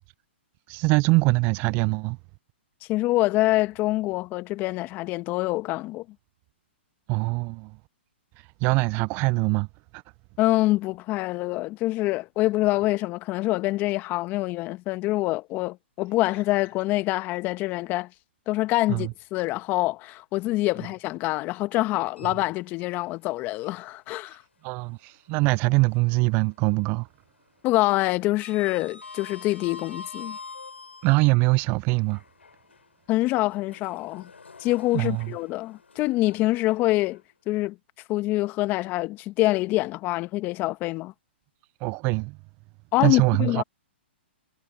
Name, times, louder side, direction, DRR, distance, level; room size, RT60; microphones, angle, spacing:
voice 1, 0.7-2.2 7.1-7.7 8.6-9.7 9.9-10.0 18.9-19.1 24.6-27.1 31.0-32.2 34.9-35.3 41.8-42.4 43.0-43.6, right 26 dB, 30° right, 0.4 m, -23 dB
voice 2, 2.9-6.0 10.4-18.1 18.5-24.4 27.6-30.4 33.1-34.3 34.6-37.2 37.5-37.8 38.1-41.1 42.9-43.6, left 18 dB, 30° left, 1.3 m, -25 dB
Sliding door, 22.1-23.1 23.4-23.6 25.3-26.3 26.6-27.0 27.2-31.3 32.0-37.2, left 4 dB, 90° left, 4.9 m, -46 dB
hypercardioid pair, 130°, 6 cm